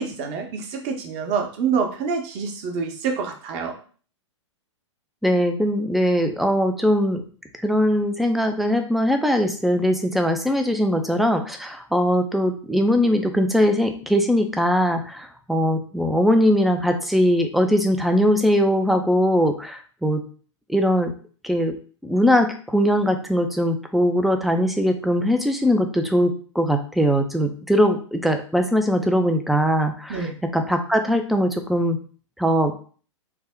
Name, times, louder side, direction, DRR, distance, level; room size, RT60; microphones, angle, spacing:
voice 1, 0.0-3.7 30.1-30.3, right 5 dB, 40° right, 3 dB, 0.8 m, -26 dB
voice 2, 5.2-7.2 7.6-20.2 20.7-21.1 21.4-21.8 22.0-32.0 32.4-32.7, equal, ahead, 6 dB, 0.3 m, -21 dB
3.3 x 2.1 x 3.5 m, 0.42 s
hypercardioid pair, 115°, 16 cm